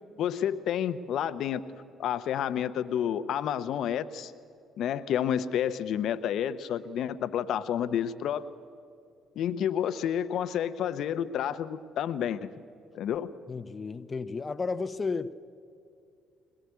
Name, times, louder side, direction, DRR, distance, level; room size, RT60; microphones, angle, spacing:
voice 1, 0.2-1.6 2.0-4.3 4.8-8.4 9.4-12.5 12.9-13.3, left 9 dB, 65° left, 13 dB, 0.9 m, -30 dB
voice 2, 13.5-15.3, left 4 dB, 35° left, 13 dB, 0.8 m, -33 dB
21.5 x 20.5 x 8.3 m, 2.5 s
hypercardioid pair, 50°, 0 cm